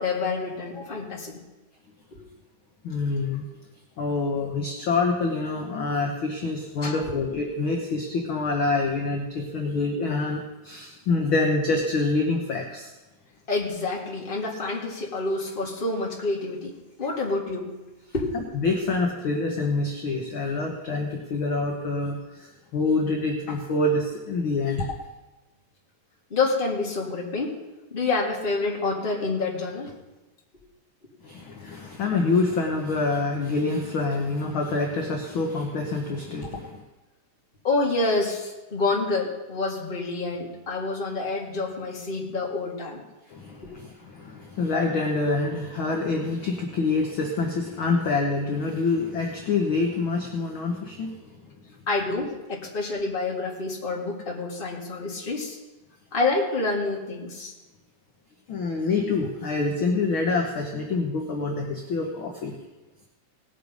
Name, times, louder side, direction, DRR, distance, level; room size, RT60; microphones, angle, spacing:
voice 1, 0.0-1.4 2.1-2.2 6.8-7.0 13.5-16.7 17.0-17.8 18.1-18.4 26.3-27.5 27.9-29.9 37.6-43.0 43.6-43.7 51.9-55.6 56.1-57.5, left 3 dB, 20° left, -2 dB, 1.8 m, -28 dB
voice 2, 2.8-3.4 4.0-12.9 18.3-24.9 31.2-36.8 43.3-51.2 58.5-62.5, left 3 dB, 60° left, 1 dB, 1.4 m, -26 dB
18.5 x 6.7 x 5.2 m, 1.1 s
omnidirectional pair, 3.7 m